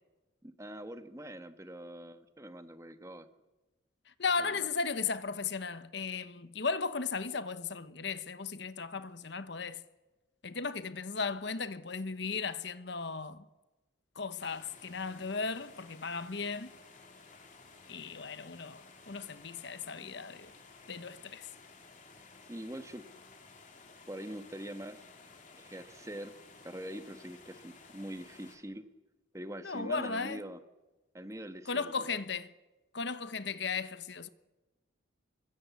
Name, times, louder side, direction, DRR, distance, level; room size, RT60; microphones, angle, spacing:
voice 1, 0.4-3.3 4.4-4.5 22.5-23.0 24.1-25.0 25.5-26.3 26.6-28.9 29.3-30.6 31.1-32.2, right 1 dB, 15° right, 1.2 m, -44 dB
voice 2, 4.1-9.8 10.4-13.4 14.2-16.7 17.9-20.5 20.9-21.5 29.6-30.4 31.7-32.5 32.9-34.3, left 5 dB, 60° left, 1.0 m, -36 dB
sound 1, 14.4-28.6, left 4 dB, 40° left, 3.4 m, -56 dB
26.0 x 22.0 x 8.3 m
head